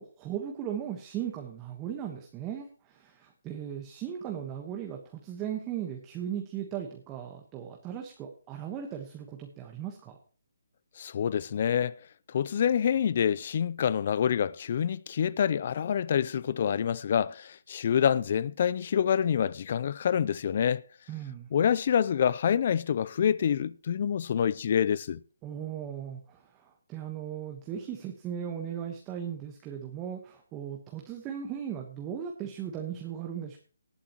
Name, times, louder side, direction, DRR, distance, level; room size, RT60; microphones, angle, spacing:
voice 1, 0.0-10.2 21.1-21.5 25.4-33.6, right 9 dB, 20° right, 1.3 m, -37 dB
voice 2, 11.0-12.0 12.3-20.8 21.5-25.2, left 8 dB, 45° left, 0.5 m, -27 dB
19.0 x 8.6 x 3.1 m
hypercardioid pair, 155°, 0 cm